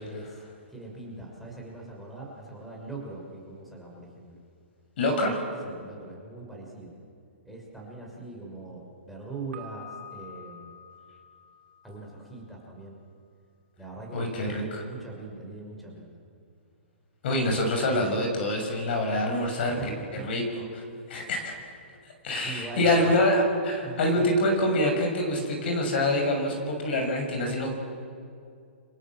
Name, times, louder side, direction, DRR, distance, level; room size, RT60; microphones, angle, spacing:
voice 1, 0.7-4.4 5.6-6.9 7.4-10.7 11.8-13.0 13.8-14.3 14.6-16.1 19.8-20.5 22.4-23.1 23.8-24.4, right 3 dB, ahead, -2 dB, 5.8 m, -41 dB
voice 2, 5.0-5.4 14.1-14.8 17.2-19.8 20.1-20.8 21.1-21.5 22.2-27.8, left 1 dB, 55° left, 3 dB, 7.0 m, -26 dB
Piano, 9.5-12.4, left 3 dB, 65° right, 3.6 m, -47 dB
30.0 x 25.5 x 7.6 m, 2.3 s
hypercardioid pair, 140°, 7 cm